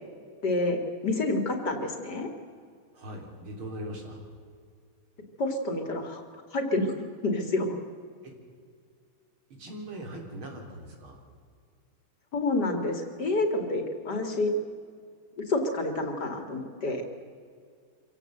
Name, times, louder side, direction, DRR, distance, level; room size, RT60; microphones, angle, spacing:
voice 1, 0.4-2.3 5.4-6.2 6.5-7.8 12.3-14.5 15.4-17.0, left 2 dB, 55° left, 5 dB, 2.6 m, -28 dB
voice 2, 2.9-4.2 8.2-8.3 9.6-11.2, right 1 dB, 90° right, 2 dB, 4.4 m, -40 dB
25.0 x 17.0 x 7.8 m, 2.2 s
omnidirectional pair, 2.2 m